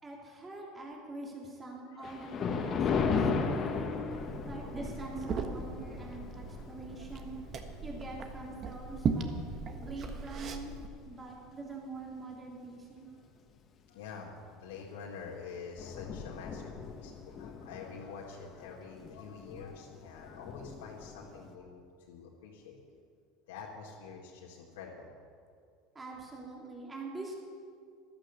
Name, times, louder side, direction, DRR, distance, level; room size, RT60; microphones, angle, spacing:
voice 1, 0.0-3.9 4.4-7.3 7.8-9.4 9.8-10.7 11.0-13.1 25.9-27.4, right 2 dB, 20° right, -1 dB, 3.2 m, -44 dB
voice 2, 1.9-2.3 4.6-4.8 7.0-7.1 13.9-22.8 23.5-25.1, left 5 dB, 80° left, -4 dB, 1.8 m, -47 dB
Thunder, 2.0-10.6 11.1-11.3 12.0-12.1 12.5-12.6 14.7-15.0 15.3-15.4 15.5-21.6, left 5 dB, 40° left, 1.5 m, -37 dB
Liquid, 4.1-10.9, right 5 dB, 40° right, 1.4 m, -38 dB
14.0 x 12.0 x 6.9 m, 2.2 s
hypercardioid pair, 90°, 0 cm